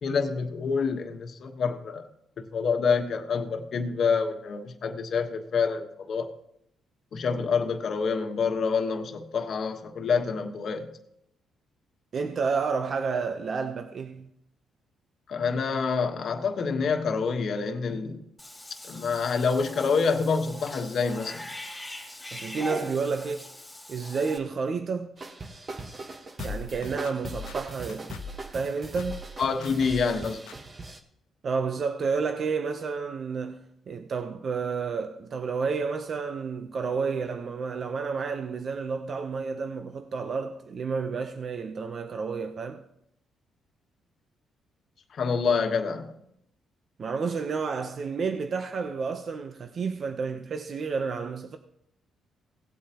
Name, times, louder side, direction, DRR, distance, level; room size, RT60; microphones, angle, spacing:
voice 1, 0.0-2.1 2.4-6.3 7.1-10.9 15.3-18.2 18.9-21.5 29.4-30.4 45.1-46.2, left 5 dB, 55° left, 1.3 m, -27 dB
voice 2, 12.1-14.3 22.3-23.5 23.9-25.1 26.4-28.2 28.5-29.2 31.4-42.8 47.0-51.6, right 5 dB, 50° right, 0.8 m, -30 dB
Cat / Bathtub (filling or washing), 18.4-24.4, left 1 dB, 10° left, 2.9 m, -41 dB
sound 1, 25.2-31.0, right 3 dB, 35° right, 1.3 m, -41 dB
sound 2, 26.4-28.5 29.0-29.3 29.6-30.2 30.5-30.6, left 4 dB, 90° left, 0.8 m, -39 dB
17.5 x 8.2 x 3.0 m
cardioid pair, 90°, 0 cm